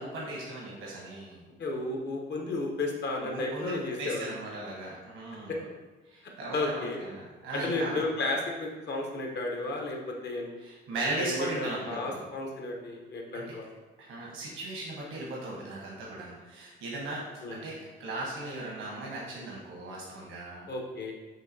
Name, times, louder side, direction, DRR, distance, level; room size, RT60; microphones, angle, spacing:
voice 1, 0.0-1.4 3.2-5.5 6.1-8.1 10.6-12.2 13.3-13.5 14.0-17.2 17.5-20.7, right 2 dB, 85° right, -4 dB, 1.1 m, -37 dB
voice 2, 1.6-4.3 5.5-5.6 6.5-7.0 7.5-10.5 11.2-13.7 17.4-17.7 20.7-21.1, left 2 dB, 60° left, 1 dB, 0.9 m, -33 dB
5.6 x 2.8 x 2.7 m, 1.2 s
cardioid pair, 90°, 20 cm